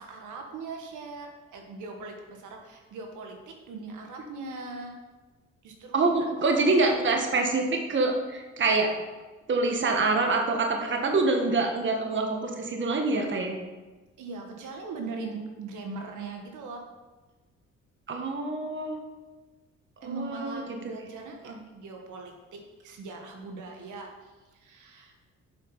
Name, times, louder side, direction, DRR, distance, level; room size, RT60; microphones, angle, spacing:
voice 1, 0.0-4.9 5.6-6.7 14.2-16.8 20.0-25.1, right 3 dB, 80° right, 3 dB, 1.4 m, -40 dB
voice 2, 5.9-8.9 9.5-13.6 18.1-19.0 20.0-20.9 21.5-21.6, right 3 dB, 40° right, 3 dB, 1.3 m, -26 dB
7.5 x 5.8 x 5.6 m, 1.2 s
cardioid pair, 90°, 30 cm